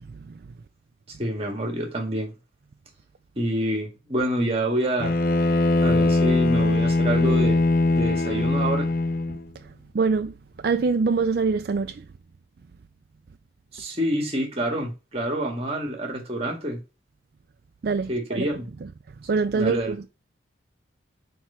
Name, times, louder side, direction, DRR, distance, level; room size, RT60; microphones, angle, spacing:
voice 1, 1.2-2.3 3.4-5.1 5.8-8.9 13.7-16.8 18.1-18.7 19.5-19.9, right 1 dB, 30° right, 1.7 m, -27 dB
Bowed string instrument, 5.0-9.5, left 2 dB, 50° left, 0.5 m, -21 dB
voice 2, 9.9-10.3 10.6-12.0 17.8-18.5 19.3-20.1, right 4 dB, 55° right, 0.4 m, -24 dB
4.6 x 4.5 x 5.6 m
head